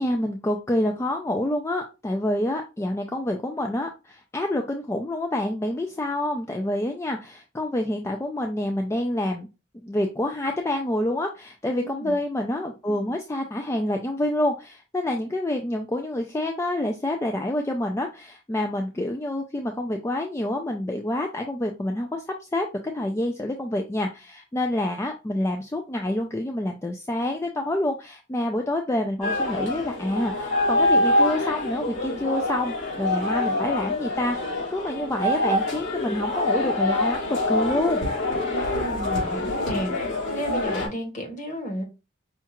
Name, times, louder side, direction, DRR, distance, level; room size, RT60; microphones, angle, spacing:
voice 1, 0.0-9.5 9.8-22.7 22.9-38.1, left 1 dB, 15° left, 3 dB, 0.3 m, -27 dB
voice 2, 11.7-12.1 38.5-41.8, right 1 dB, 40° left, 2 dB, 1.2 m, -33 dB
sound 1, 29.2-40.9, left 1 dB, 70° left, 2.6 m, -25 dB
5.6 x 2.4 x 2.9 m, 0.28 s
head